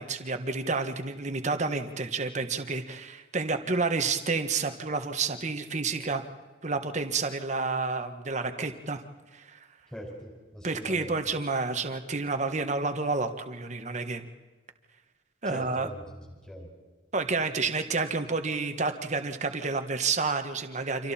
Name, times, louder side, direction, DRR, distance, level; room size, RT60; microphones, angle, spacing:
voice 1, 0.0-6.2 6.6-9.0 9.3-9.6 10.6-14.2 15.4-15.9 17.1-21.1, right 4 dB, 40° right, 7 dB, 1.5 m, -30 dB
voice 2, 9.9-11.2 15.4-16.7, equal, 5° left, 0 dB, 4.9 m, -42 dB
30.0 x 26.5 x 4.4 m, 1.3 s
head